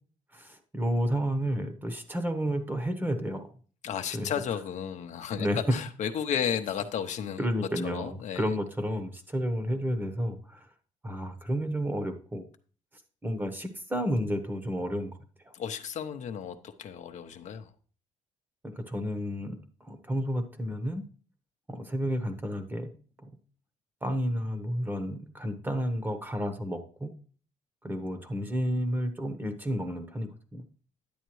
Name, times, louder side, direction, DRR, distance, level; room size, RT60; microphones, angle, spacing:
voice 1, 0.3-3.5 4.1-4.3 5.4-5.6 7.4-10.7 11.0-12.4 13.2-15.1 15.4-15.5 18.6-21.0 21.7-22.9 23.2-23.3 24.0-27.1 27.8-30.7, equal, 15° right, 8 dB, 1.0 m, -31 dB
voice 2, 3.8-7.4 7.8-8.5 15.5-17.7, left 8 dB, 60° left, 7 dB, 0.7 m, -33 dB
10.0 x 7.9 x 3.1 m, 0.40 s
cardioid pair, 115°, 13 cm